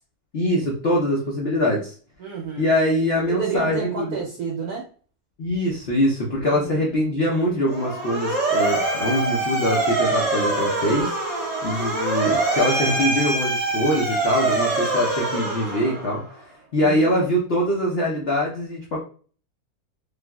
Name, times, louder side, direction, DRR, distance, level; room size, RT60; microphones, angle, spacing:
voice 1, 0.3-1.9 2.6-4.2 5.4-16.2 16.7-19.0, equal, 85° left, -3 dB, 0.5 m, -23 dB
voice 2, 2.2-2.7 3.3-4.9 6.4-6.9 16.7-17.1, right 6 dB, 70° right, -1 dB, 0.9 m, -30 dB
Motor vehicle (road) / Siren, 7.7-16.3, right 2 dB, 35° right, 0.7 m, -24 dB
3.3 x 2.5 x 2.2 m, 0.42 s
omnidirectional pair, 2.0 m